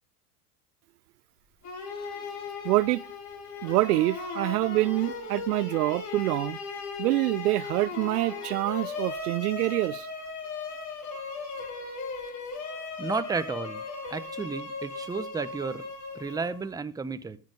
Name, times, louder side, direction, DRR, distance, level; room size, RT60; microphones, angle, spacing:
sound 1, 1.6-16.7, left 4 dB, 35° left, 3.1 m, -37 dB
voice 1, 2.6-3.0 3.6-6.6 7.0-10.1, right 18 dB, 80° right, 0.5 m, -26 dB
voice 2, 13.0-13.8 14.1-15.9 16.1-17.4, right 4 dB, 10° right, 0.7 m, -32 dB
14.0 x 6.6 x 5.0 m
hypercardioid pair, 100°, 46 cm